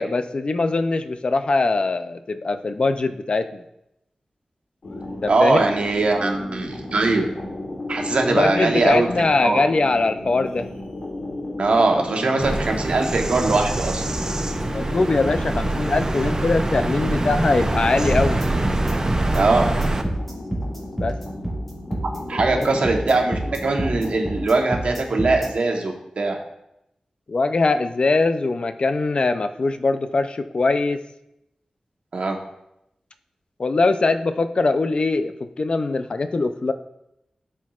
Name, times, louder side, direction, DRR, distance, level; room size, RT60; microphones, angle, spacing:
voice 1, 0.0-3.6 5.2-5.6 8.4-10.7 14.6-18.4 20.9-21.1 22.5-22.7 27.3-31.0 33.6-36.7, left 3 dB, 55° left, 9 dB, 0.4 m, -22 dB
sound 1, 4.8-24.5, left 2 dB, 75° left, 1.7 m, -34 dB
voice 2, 5.3-7.3 7.9-9.1 9.4-9.6 11.6-14.0 19.3-19.7 22.3-26.4 32.1-32.4, right 3 dB, 75° right, 2 dB, 1.0 m, -21 dB
Bird vocalization bird call bird song, 12.4-20.0, right 2 dB, 30° right, 0.6 m, -24 dB
sound 2, 18.2-25.5, right 1 dB, 10° left, 1.9 m, -28 dB
11.5 x 4.5 x 2.4 m, 0.84 s
wide cardioid pair, 80°, 2 cm